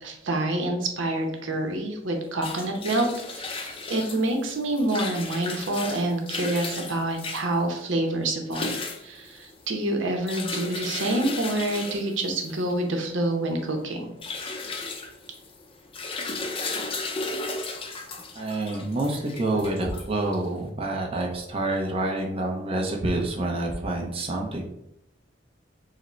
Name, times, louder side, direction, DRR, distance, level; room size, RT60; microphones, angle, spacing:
voice 1, 0.0-14.2, right 1 dB, 85° right, 3 dB, 0.8 m, -27 dB
sound 1, 2.1-20.6, left 3 dB, 30° left, 0.5 m, -35 dB
voice 2, 18.3-24.7, right 2 dB, 30° right, 0 dB, 0.7 m, -28 dB
4.9 x 2.1 x 4.3 m, 0.81 s
head